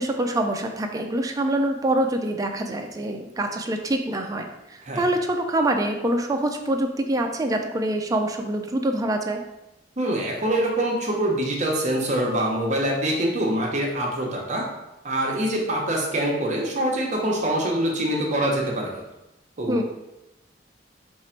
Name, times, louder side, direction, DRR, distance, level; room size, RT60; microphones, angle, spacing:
voice 1, 0.0-9.4 19.7-19.8, right 1 dB, 20° right, 4 dB, 0.4 m, -25 dB
voice 2, 10.0-14.7 15.0-19.0 19.6-19.8, right 1 dB, 40° right, -1 dB, 0.8 m, -24 dB
4.4 x 2.5 x 4.4 m, 0.94 s
head